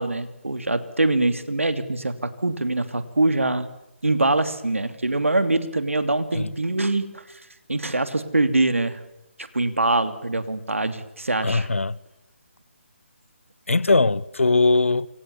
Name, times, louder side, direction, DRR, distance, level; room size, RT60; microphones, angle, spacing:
voice 1, 0.0-3.7 4.0-7.4 7.7-9.0 9.5-11.7, right 2 dB, 85° right, 3.0 m, -23 dB
voice 2, 11.4-12.0 13.7-15.1, left 3 dB, 80° left, 1.0 m, -20 dB
27.5 x 25.5 x 7.2 m
figure-of-eight pair, 150°, 7 cm